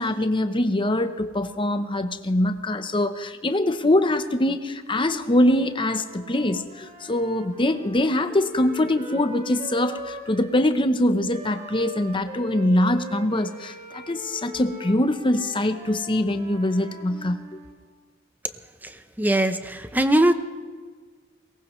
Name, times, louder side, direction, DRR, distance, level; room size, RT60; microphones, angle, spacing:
voice 1, 0.0-17.4, left 1 dB, 25° left, 9 dB, 0.8 m, -23 dB
Wind instrument woodwind instrument, 4.8-10.6 11.3-17.8, right 1 dB, 35° right, 1.9 m, -41 dB
voice 2, 18.8-20.3, right 1 dB, 10° right, 10 dB, 0.7 m, -21 dB
22.5 x 19.0 x 3.2 m, 1.5 s
head